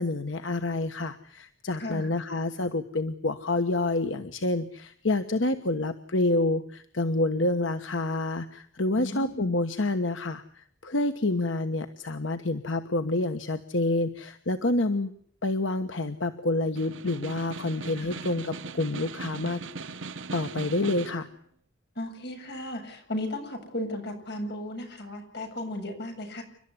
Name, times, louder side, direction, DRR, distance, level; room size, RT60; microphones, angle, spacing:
voice 1, 0.0-15.1 15.4-19.6 20.3-21.3, left 2 dB, 85° left, 8 dB, 1.3 m, -28 dB
voice 2, 1.8-2.1 8.9-9.4 17.9-18.2 21.9-26.4, left 1 dB, 60° left, 5 dB, 7.7 m, -35 dB
Snare drum, 16.6-21.3, right 4 dB, 85° right, 1.0 m, -39 dB
29.5 x 13.0 x 9.8 m, 0.63 s
head